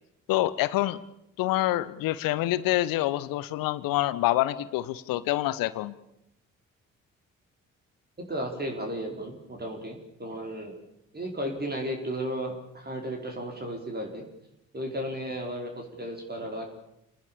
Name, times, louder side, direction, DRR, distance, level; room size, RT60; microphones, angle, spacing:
voice 1, 0.3-1.0 1.4-6.0, left 16 dB, 60° left, 17 dB, 1.2 m, -26 dB
voice 2, 8.3-10.8 11.1-14.2 14.7-16.7, equal, 25° right, 2 dB, 5.0 m, -34 dB
28.5 x 19.5 x 7.1 m, 0.80 s
figure-of-eight pair, 45°, 38 cm